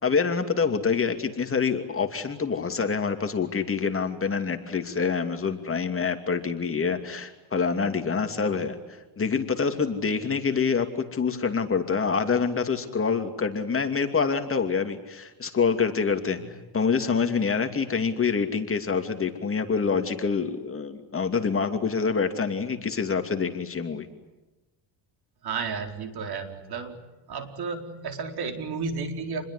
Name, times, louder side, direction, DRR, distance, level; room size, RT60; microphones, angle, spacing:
voice 1, 0.0-8.8 9.2-16.4 16.7-24.1, left 5 dB, 25° left, 6 dB, 2.7 m, -26 dB
voice 2, 25.4-27.0 27.3-29.4, right 5 dB, 50° right, 6 dB, 4.4 m, -32 dB
28.5 x 21.5 x 9.8 m, 1.1 s
cardioid pair, 120°, 47 cm